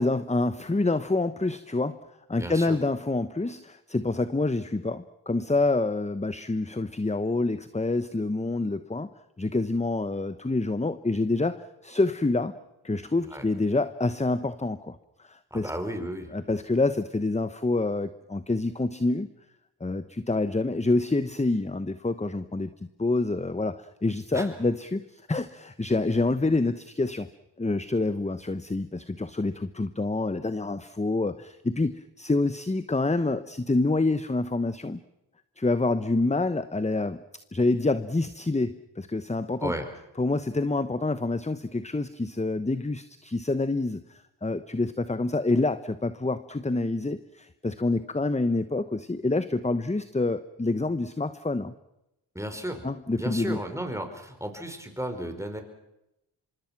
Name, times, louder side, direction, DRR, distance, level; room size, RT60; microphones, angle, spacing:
voice 1, 0.0-2.0 2.3-9.1 9.4-11.5 11.8-12.5 12.8-15.7 16.3-19.3 19.8-22.7 23.0-27.3 27.6-35.0 35.6-37.2 37.5-39.7 40.2-51.7 52.8-53.6, left 2 dB, 15° left, 12 dB, 1.1 m, -27 dB
voice 2, 2.3-2.8 13.2-13.5 15.5-16.3 24.3-24.5 39.6-39.9 52.3-52.9 53.1-55.6, equal, 5° right, 6 dB, 5.0 m, -34 dB
25.5 x 23.5 x 6.0 m, 0.88 s
cardioid pair, 50°, 47 cm